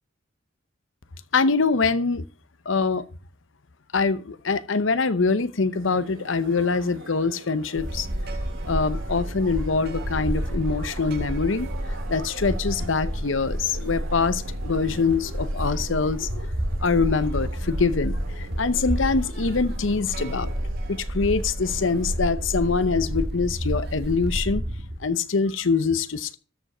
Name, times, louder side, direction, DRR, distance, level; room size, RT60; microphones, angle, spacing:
voice 1, 1.3-2.2 2.7-3.0 3.9-8.1 8.7-11.7 12.1-16.4 16.8-20.5 20.9-24.6 25.0-26.4, left 4 dB, 70° left, 0.8 m, -24 dB
sound 1, 5.7-23.2, right 2 dB, 85° right, 2.3 m, -45 dB
sound 2, 7.7-25.1, equal, 55° right, 1.7 m, -30 dB
13.5 x 5.3 x 5.9 m
head